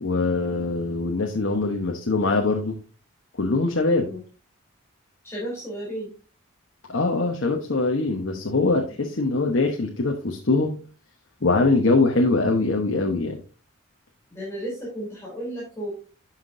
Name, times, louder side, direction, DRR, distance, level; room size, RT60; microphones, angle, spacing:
voice 1, 0.0-2.7 3.4-4.1 6.9-10.7 11.4-13.4, left 3 dB, 65° left, 1 dB, 1.0 m, -22 dB
voice 2, 5.2-6.1 14.3-15.9, right 1 dB, 10° left, -5 dB, 3.5 m, -33 dB
11.5 x 5.9 x 2.6 m, 0.34 s
head